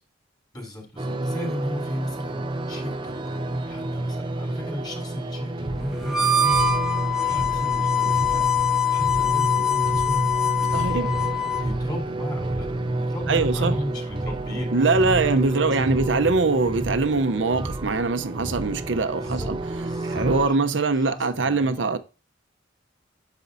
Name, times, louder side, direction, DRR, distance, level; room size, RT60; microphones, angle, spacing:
voice 1, 0.5-8.4 8.9-16.3 19.2-19.5 19.8-21.8, equal, 20° left, 3.5 m, -36 dB
sound 1, 1.0-20.5, right 2 dB, 25° right, 0.6 m, -29 dB
Harmonica, 6.0-11.7, left 5 dB, 5° right, 0.9 m, -23 dB
voice 2, 10.7-11.1 13.3-13.8 14.7-19.6 20.1-22.0, right 3 dB, 70° right, 0.7 m, -23 dB
9.3 x 7.3 x 2.7 m
head